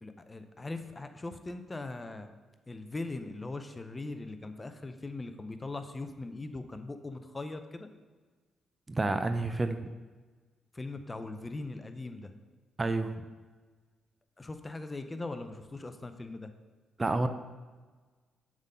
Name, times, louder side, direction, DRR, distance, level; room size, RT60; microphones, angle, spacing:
voice 1, 0.0-2.3 2.7-7.9 10.7-12.3 14.4-16.5, left 2 dB, 20° left, 8 dB, 0.6 m, -40 dB
voice 2, 8.9-9.8 12.8-13.1 17.0-17.3, right 2 dB, 25° right, 9 dB, 0.4 m, -29 dB
7.2 x 3.8 x 5.6 m, 1.4 s
cardioid pair, 85°, 0 cm